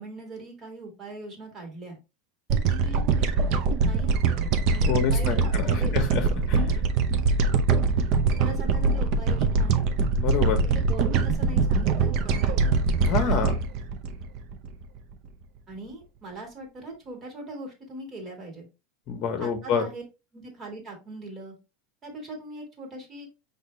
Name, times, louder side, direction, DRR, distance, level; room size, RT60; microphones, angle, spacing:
voice 1, 0.0-2.0 2.5-6.0 8.4-9.8 10.6-12.8 15.7-18.7 19.4-20.0 20.3-21.6 22.0-23.3, right 2 dB, 20° right, 1 dB, 1.9 m, -41 dB
sound 1, 2.5-15.0, right 4 dB, 45° right, 0.6 m, -23 dB
voice 2, 4.9-6.7 10.1-10.6 13.0-13.6 19.1-19.8, left 6 dB, 35° left, 5 dB, 1.2 m, -27 dB
5.6 x 2.7 x 3.2 m, 0.27 s
supercardioid pair, 160°, 0 cm